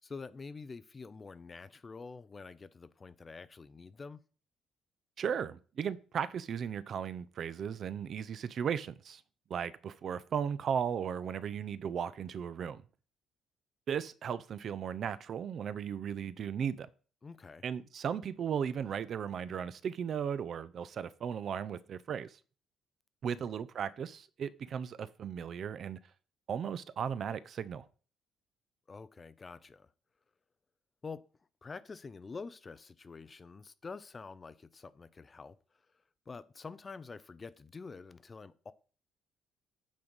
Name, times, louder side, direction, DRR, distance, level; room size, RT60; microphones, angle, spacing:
voice 1, 0.0-4.2 17.2-17.6 23.3-23.5 28.9-29.9 31.0-31.2 31.6-35.6 36.3-38.7, left 4 dB, 20° left, 0.4 m, -47 dB
voice 2, 5.2-9.2 9.5-12.8 13.9-16.9 17.6-22.4 23.2-26.0 26.5-27.9, right 7 dB, 40° right, 0.4 m, -36 dB
8.6 x 4.0 x 5.2 m
cardioid pair, 160°, 0 cm